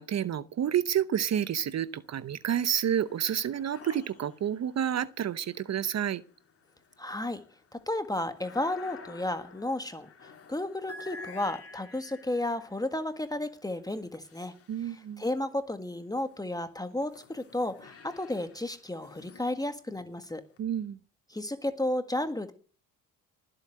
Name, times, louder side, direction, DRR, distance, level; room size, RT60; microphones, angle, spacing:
voice 1, 0.0-6.2 14.7-15.2 20.6-21.0, right 9 dB, 45° right, 0.8 m, -29 dB
sound 1, 1.3-2.0 2.3-15.5 16.1-20.6, left 4 dB, 40° left, 3.0 m, -51 dB
voice 2, 7.0-7.4 7.7-14.5 14.8-20.4 21.3-22.5, left 1 dB, 10° left, 1.7 m, -33 dB
19.5 x 8.0 x 7.6 m
supercardioid pair, 80°, 35 cm